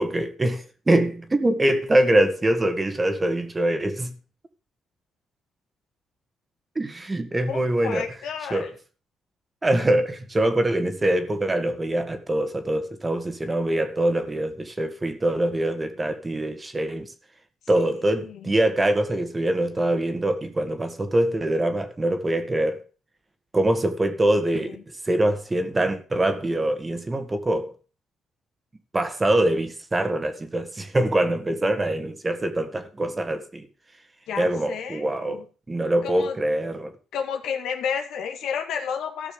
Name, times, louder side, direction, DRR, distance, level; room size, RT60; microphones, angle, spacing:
voice 1, 0.0-4.1 6.8-8.1 8.5-8.7 9.6-17.1 17.7-22.8 23.5-27.7 28.9-33.7 34.4-36.9, right 1 dB, 20° right, 1.8 m, -24 dB
voice 2, 7.5-8.7 18.2-18.5 24.5-24.8 34.3-35.5 36.0-36.4 37.1-39.3, left 7 dB, 80° left, 2.1 m, -31 dB
14.0 x 5.9 x 6.9 m
cardioid pair, 90°, 0 cm